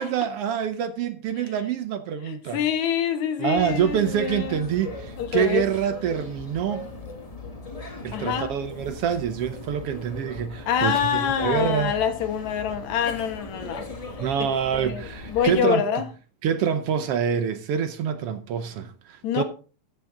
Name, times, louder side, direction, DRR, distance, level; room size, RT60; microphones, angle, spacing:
voice 1, 0.0-2.6 3.4-6.8 8.0-11.9 14.2-15.8 16.4-19.4, right 8 dB, 75° right, 1.4 m, -26 dB
voice 2, 2.3-4.6 5.2-5.7 8.1-8.5 10.7-13.9 14.7-16.1 19.2-19.4, left 8 dB, 70° left, 2.5 m, -26 dB
sound 1, 3.5-15.6, left 2 dB, 40° left, 0.5 m, -39 dB
13.0 x 8.6 x 3.8 m
omnidirectional pair, 3.5 m